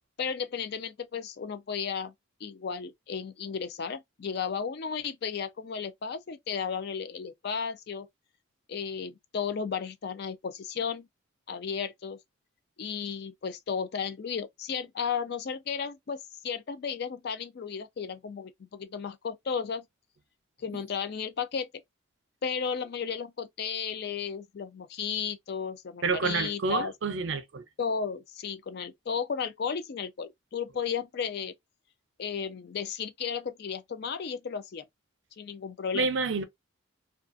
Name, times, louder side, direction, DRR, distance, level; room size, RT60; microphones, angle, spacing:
voice 1, 0.2-2.1 2.4-8.1 8.7-11.1 11.5-12.2 12.8-19.9 20.6-21.7 22.4-26.9 27.8-31.5 32.2-34.8 35.4-36.1, left 6 dB, 50° left, 0.4 m, -34 dB
voice 2, 26.0-27.6 35.9-36.4, right 4 dB, 60° right, 0.5 m, -28 dB
2.4 x 2.4 x 2.5 m
head